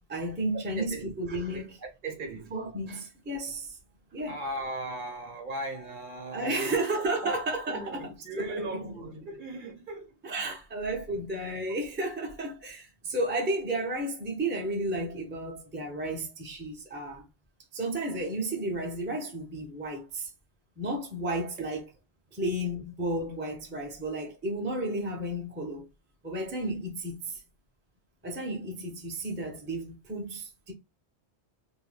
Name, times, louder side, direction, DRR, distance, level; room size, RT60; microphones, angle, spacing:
voice 1, 0.1-1.8 2.5-3.8 4.1-4.4 6.3-8.9 10.2-17.2 17.7-20.3 20.8-21.9 22.3-25.8 26.2-27.4 28.2-30.7, right 1 dB, 15° right, 0.4 m, -33 dB
voice 2, 0.8-1.1 1.5-1.6 2.0-2.5 4.3-7.4 7.7-10.2, right 1 dB, 50° right, 0.8 m, -38 dB
2.6 x 2.1 x 3.1 m
omnidirectional pair, 1.2 m